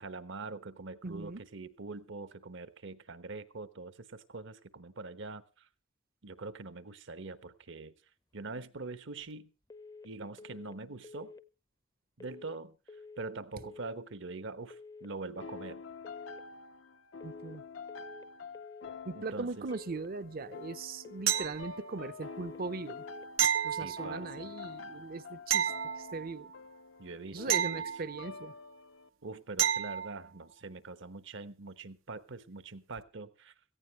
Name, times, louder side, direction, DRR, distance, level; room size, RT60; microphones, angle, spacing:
voice 1, 0.0-5.7 6.2-7.9 8.3-9.5 10.0-11.3 12.2-15.8 19.1-19.7 23.7-24.5 27.0-27.9 29.2-33.5, right 3 dB, 70° right, 1.1 m, -44 dB
voice 2, 1.0-1.4 17.2-17.6 19.1-23.0 23.6-26.5 27.3-28.5, right 3 dB, 50° right, 0.7 m, -40 dB
sound 1, 9.7-10.1 10.4-10.8 11.0-11.4 12.2-12.6 12.9-13.3 13.5-13.9 14.7-15.1 15.4-15.8 16.0-16.4 17.2-17.6 17.9-18.3 18.5-18.9 19.7-20.1 20.4-20.8 21.0-21.4 22.2-22.6 22.9-23.3 23.5-23.9, left 4 dB, 20° left, 0.6 m, -50 dB
sound 2, 15.4-29.1, left 4 dB, 70° left, 0.7 m, -47 dB
sound 3, 21.3-22.0 23.4-24.5 25.5-26.5 27.5-28.5 29.6-30.2 33.0-33.1, right 9 dB, 85° right, 0.8 m, -31 dB
17.5 x 15.0 x 3.2 m
head